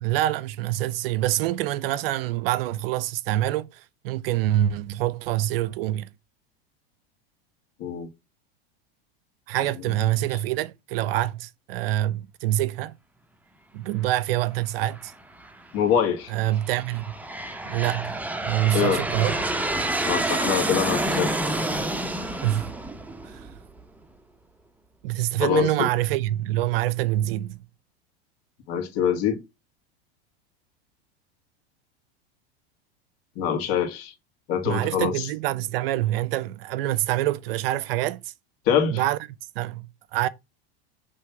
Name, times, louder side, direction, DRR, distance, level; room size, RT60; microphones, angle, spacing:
voice 1, 0.0-6.1 9.5-12.9 13.7-15.1 16.3-17.1 17.6-18.1 18.4-19.4 22.4-22.7 23.2-23.4 25.0-27.6 34.6-38.3 38.9-39.2 39.6-40.3, right 14 dB, 70° right, 0.6 m, -26 dB
Aircraft, 15.0-15.5 16.2-23.8, right 1 dB, 5° right, 0.8 m, -28 dB
voice 2, 15.7-16.3 18.7-19.0 20.1-21.3 25.4-25.9 28.7-29.4 33.4-34.1 34.5-35.3 38.7-39.0, left 8 dB, 50° left, 1.9 m, -24 dB
5.7 x 3.3 x 5.8 m
hypercardioid pair, 105°, 30 cm